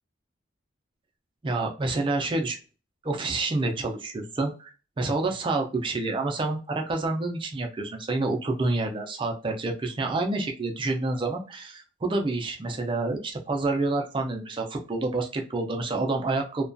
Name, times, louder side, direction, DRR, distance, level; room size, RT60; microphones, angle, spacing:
voice 1, 1.4-2.6 3.0-16.7, right 2 dB, 25° right, 2 dB, 0.4 m, -28 dB
2.3 x 2.2 x 2.5 m, 0.35 s
head